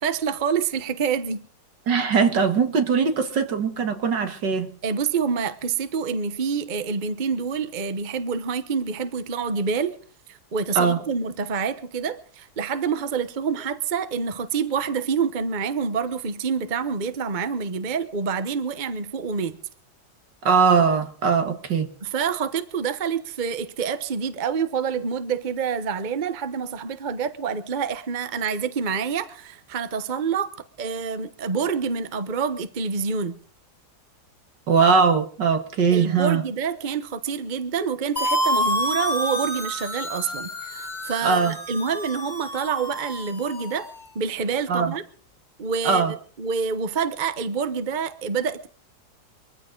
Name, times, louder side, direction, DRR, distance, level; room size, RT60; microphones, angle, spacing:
voice 1, 0.0-1.4 4.8-10.0 10.3-19.6 22.0-30.5 30.8-33.4 35.9-43.9 44.1-45.0 45.6-46.1 46.4-48.7, right 6 dB, 30° right, 1.0 m, -27 dB
voice 2, 1.9-4.7 10.7-11.0 20.4-21.9 34.7-36.4 41.2-41.5 44.7-44.9 45.8-46.1, right 5 dB, 70° right, 2.3 m, -20 dB
sound 1, 38.2-43.9, equal, 25° left, 2.5 m, -28 dB
23.0 x 15.0 x 3.9 m
omnidirectional pair, 2.0 m